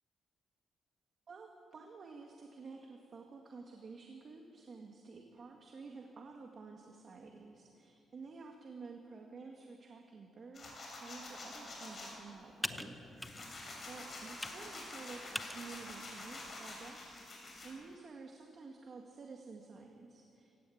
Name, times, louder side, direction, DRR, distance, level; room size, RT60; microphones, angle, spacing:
voice 1, 1.3-12.8 13.9-20.6, right 4 dB, 40° right, 2 dB, 1.9 m, -51 dB
sound 1, 10.5-12.1 12.7-17.7, left 2 dB, 30° left, 6.5 m, -47 dB
Computer keyboard, 11.2-18.0, left 1 dB, 5° left, 0.8 m, -48 dB
26.0 x 16.5 x 8.7 m, 2.6 s
cardioid pair, 150°, 0 cm